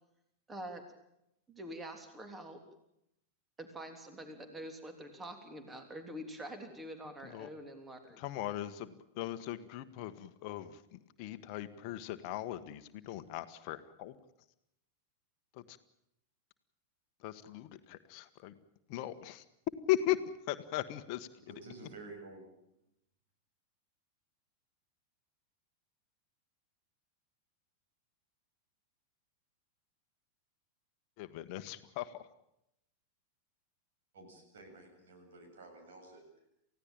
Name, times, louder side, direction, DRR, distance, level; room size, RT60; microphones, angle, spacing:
voice 1, 0.5-0.8 1.5-2.6 3.6-8.2, right 1 dB, 15° right, 6 dB, 3.4 m, -46 dB
voice 2, 8.2-14.1 15.5-15.8 17.2-18.5 18.9-19.4 19.9-20.2 20.5-21.3 31.2-32.3, left 14 dB, 45° left, 10 dB, 1.3 m, -38 dB
voice 3, 21.5-22.4 34.1-36.5, right 3 dB, 60° right, 4 dB, 7.6 m, -51 dB
28.5 x 16.5 x 8.9 m, 0.82 s
figure-of-eight pair, 90°, 0 cm